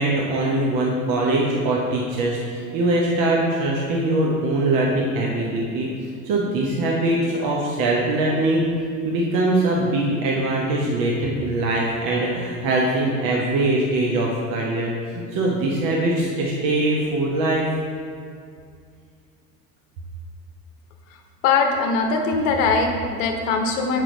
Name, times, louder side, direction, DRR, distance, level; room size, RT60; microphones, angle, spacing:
voice 1, 0.0-5.9 6.2-8.6 9.0-17.6, right 2 dB, 40° right, -3 dB, 1.0 m, -22 dB
voice 2, 21.4-24.0, left 4 dB, 55° left, 3 dB, 0.9 m, -21 dB
7.5 x 4.8 x 3.9 m, 2.3 s
figure-of-eight pair, 70°, 47 cm